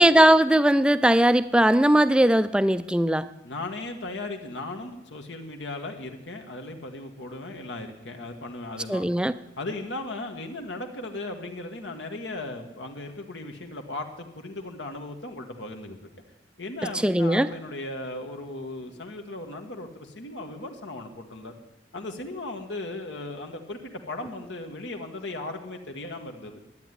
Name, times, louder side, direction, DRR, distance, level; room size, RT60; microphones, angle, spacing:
voice 1, 0.0-3.3 8.9-9.3 17.0-17.5, right 1 dB, 5° right, 14 dB, 0.4 m, -19 dB
voice 2, 3.4-9.1 9.6-16.0 16.6-21.5 21.9-23.8 24.1-26.6, left 2 dB, 85° left, 3 dB, 1.6 m, -37 dB
11.5 x 9.1 x 9.9 m, 0.99 s
head